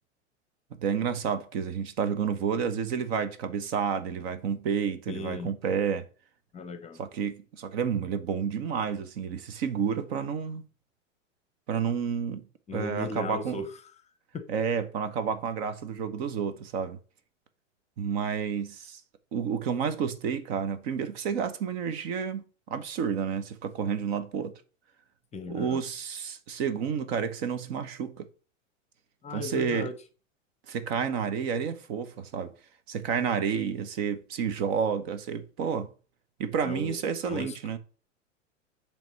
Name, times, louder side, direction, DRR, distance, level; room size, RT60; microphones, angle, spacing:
voice 1, 0.8-6.0 7.0-10.6 11.7-12.5 12.7-13.6 14.5-17.0 18.0-19.0 19.3-22.4 22.7-24.5 25.5-28.3 29.3-29.9 30.7-32.5 32.9-35.9 36.4-37.8, right 7 dB, 55° right, 1.1 m, -30 dB
voice 2, 5.1-5.5 6.5-7.0 12.7-13.7 14.3-14.4 25.3-25.8 29.2-29.9 36.6-37.0 37.3-37.6, left 4 dB, 15° left, 0.8 m, -36 dB
9.0 x 3.5 x 5.5 m
hypercardioid pair, 100°, 38 cm